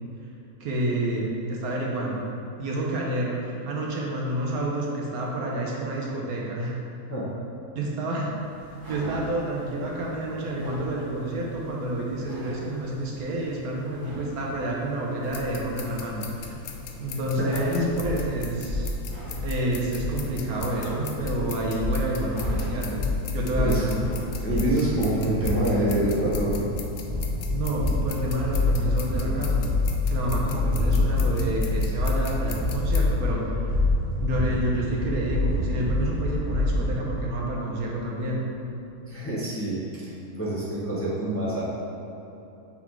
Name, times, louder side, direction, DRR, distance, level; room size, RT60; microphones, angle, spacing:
voice 1, 0.6-2.3 2.6-6.8 7.8-16.6 17.0-18.9 19.4-23.0 23.3-24.1 27.5-29.7 30.1-33.8 34.2-38.5, right 1 dB, 75° right, -2 dB, 1.3 m, -29 dB
sound 1, 8.2-25.4, equal, 55° right, 1.9 m, -43 dB
sound 2, 15.2-33.1, left 5 dB, 65° left, 0.7 m, -40 dB
voice 2, 17.4-18.0 23.6-23.8 24.4-26.7 39.0-41.6, right 1 dB, 10° left, -8 dB, 0.8 m, -26 dB
sound 3, 17.9-36.9, left 2 dB, 35° right, 1.3 m, -27 dB
5.8 x 4.1 x 4.6 m, 3.0 s
omnidirectional pair, 1.6 m